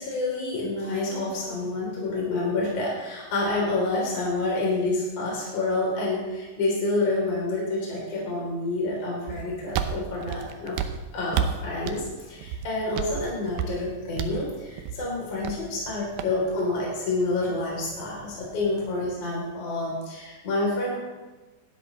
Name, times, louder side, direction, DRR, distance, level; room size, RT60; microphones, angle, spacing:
voice 1, 0.0-10.8 11.1-21.0, left 2 dB, 35° left, -4 dB, 4.6 m, -28 dB
sound 1, 9.3-19.2, right 8 dB, 80° right, 2.2 m, -34 dB
17.5 x 12.5 x 3.4 m, 1.2 s
omnidirectional pair, 5.3 m